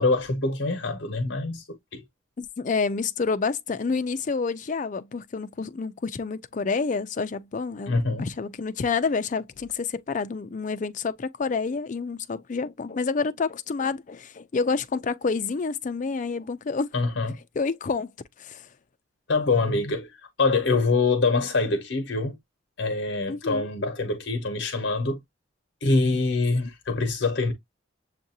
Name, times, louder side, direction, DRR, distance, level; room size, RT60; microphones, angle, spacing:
voice 1, 0.0-1.6 1.9-2.0 7.9-8.3 16.9-17.4 19.3-20.1 20.4-22.3 22.8-25.2 25.8-27.5, left 3 dB, 60° left, 0.8 m, -24 dB
voice 2, 2.4-16.9 17.6-18.1 18.4-18.7 23.3-23.7, left 4 dB, 40° left, 0.4 m, -28 dB
7.2 x 2.4 x 2.7 m
head